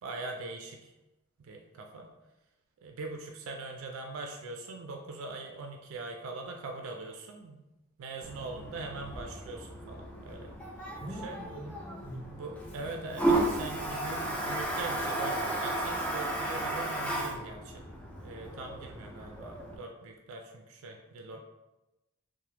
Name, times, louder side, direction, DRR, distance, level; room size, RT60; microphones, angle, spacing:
voice 1, 0.0-0.9 1.4-2.1 2.8-7.6 8.0-10.5 11.1-11.3 12.3-17.8 18.2-21.4, right 3 dB, 75° right, 2 dB, 0.3 m, -41 dB
Toilet flush, 8.2-19.8, right 1 dB, 5° left, 0.3 m, -34 dB
voice 2, 11.0-12.3, right 1 dB, 15° right, -6 dB, 0.9 m, -43 dB
2.8 x 2.1 x 3.1 m, 1.0 s
head